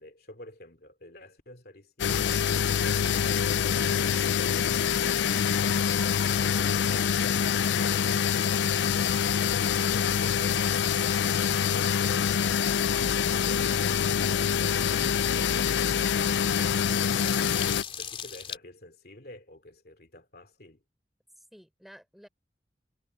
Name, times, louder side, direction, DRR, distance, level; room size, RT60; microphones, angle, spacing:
voice 1, 0.0-2.4 17.9-20.8, left 1 dB, 60° left, 2.8 m, -49 dB
sound 1, 2.0-17.8, left 7 dB, 80° left, 0.4 m, -25 dB
sound 2, 4.6-6.7 7.0-7.6 7.9-8.0 8.3-10.3 10.5-18.6, left 7 dB, 30° left, 3.7 m, -44 dB
voice 2, 21.4-22.3, equal, ahead, 4.5 m, -53 dB
head